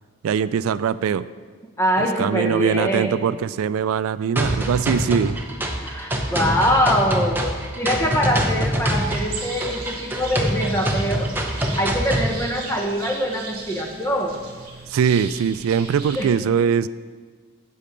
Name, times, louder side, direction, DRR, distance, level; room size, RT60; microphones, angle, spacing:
voice 1, 0.2-1.3 2.0-5.4 14.9-16.9, right 7 dB, 90° right, 15 dB, 0.3 m, -22 dB
voice 2, 1.8-3.1 5.8-11.3 11.8-14.4 16.1-16.3, equal, 15° left, 1 dB, 1.0 m, -23 dB
sound 1, 4.4-12.4, right 1 dB, 10° right, 0.7 m, -25 dB
sound 2, 8.8-16.3, right 4 dB, 45° right, 1.6 m, -37 dB
8.4 x 7.8 x 5.2 m, 1.5 s
head